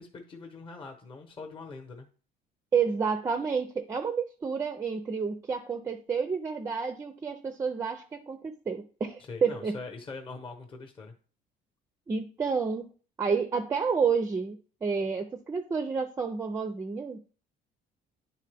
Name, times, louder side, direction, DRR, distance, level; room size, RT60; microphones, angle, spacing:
voice 1, 0.0-2.1 9.3-11.1, left 3 dB, 30° left, 4 dB, 0.9 m, -42 dB
voice 2, 2.7-9.8 12.1-12.9 13.2-17.2, right 5 dB, 20° right, 8 dB, 0.4 m, -30 dB
9.6 x 3.8 x 3.4 m, 0.39 s
cardioid pair, 165°, 18 cm